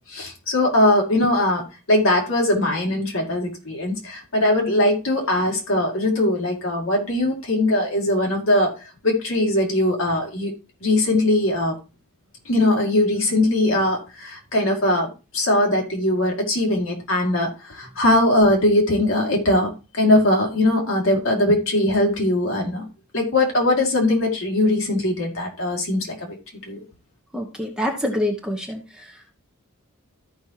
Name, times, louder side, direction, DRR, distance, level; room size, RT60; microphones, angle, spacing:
voice 1, 0.1-10.5 10.8-11.7 12.4-22.9 23.1-26.4 26.7-26.8, left 1 dB, 60° left, 0 dB, 2.4 m, -20 dB
voice 2, 27.3-29.1, left 1 dB, 5° right, 1 dB, 1.1 m, -26 dB
14.0 x 5.3 x 2.9 m, 0.30 s
head